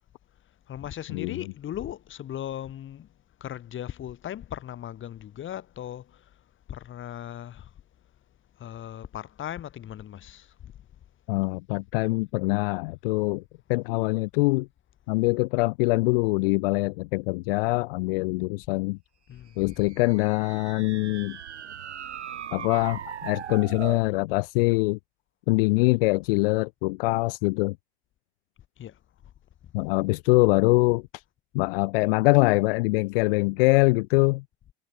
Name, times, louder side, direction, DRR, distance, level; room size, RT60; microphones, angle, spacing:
voice 1, 0.7-3.1 3.4-6.1 6.7-7.7 8.6-10.7 19.3-19.6 28.8-28.9, left 11 dB, 35° left, 5.7 m, -38 dB
voice 2, 11.3-13.4 13.7-14.7 15.1-19.0 19.6-21.4 22.5-25.0 25.5-27.8 29.7-31.2 31.5-34.4, left 25 dB, 55° left, 1.0 m, -23 dB
sound 1, 19.7-24.1, right 9 dB, 75° right, 2.8 m, -39 dB
figure-of-eight pair, 75°, 34 cm